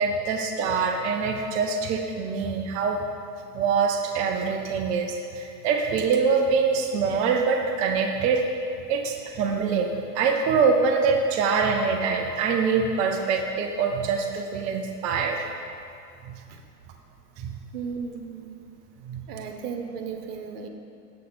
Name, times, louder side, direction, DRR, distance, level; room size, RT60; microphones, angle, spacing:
voice 1, 0.0-3.0 3.5-8.4 8.9-15.4 16.2-16.3 17.4-17.5 19.0-19.2, right 5 dB, 15° right, 2 dB, 0.3 m, -24 dB
voice 2, 17.7-18.6 19.3-20.7, right 6 dB, 70° right, 5 dB, 1.4 m, -35 dB
15.0 x 5.6 x 4.1 m, 2.5 s
hypercardioid pair, 125°, 48 cm